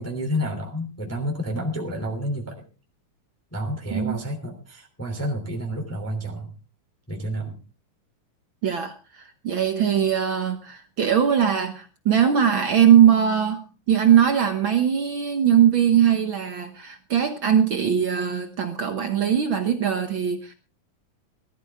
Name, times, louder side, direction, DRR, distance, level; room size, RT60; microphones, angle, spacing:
voice 1, 0.0-2.6 3.5-6.5 7.1-7.6, equal, 5° left, 1 dB, 2.4 m, -30 dB
voice 2, 8.6-13.6 13.9-20.5, right 9 dB, 70° right, 7 dB, 1.2 m, -20 dB
19.0 x 13.0 x 3.6 m, 0.33 s
omnidirectional pair, 3.7 m